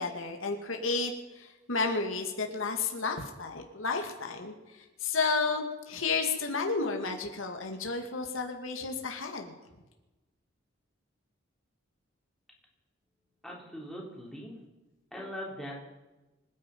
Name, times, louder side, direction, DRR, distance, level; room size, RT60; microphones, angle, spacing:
voice 1, 0.0-9.6, left 4 dB, 85° left, 3 dB, 2.3 m, -32 dB
voice 2, 13.4-14.6 15.1-15.8, equal, ahead, -3 dB, 3.9 m, -41 dB
26.0 x 9.8 x 5.5 m, 1.1 s
head